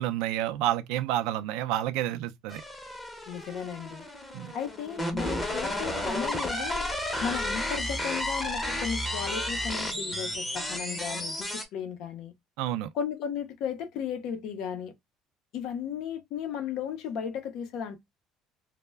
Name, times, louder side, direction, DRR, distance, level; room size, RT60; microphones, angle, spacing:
voice 1, 0.0-2.6 4.3-4.5 12.6-12.9, right 13 dB, 85° right, 0.3 m, -29 dB
sound 1, 2.5-11.6, left 1 dB, 10° left, 0.7 m, -32 dB
voice 2, 3.3-4.1 4.5-6.8 7.2-12.3 12.9-14.9 15.5-18.0, left 7 dB, 70° left, 0.6 m, -35 dB
2.2 x 2.0 x 3.3 m
cardioid pair, 125°, 0 cm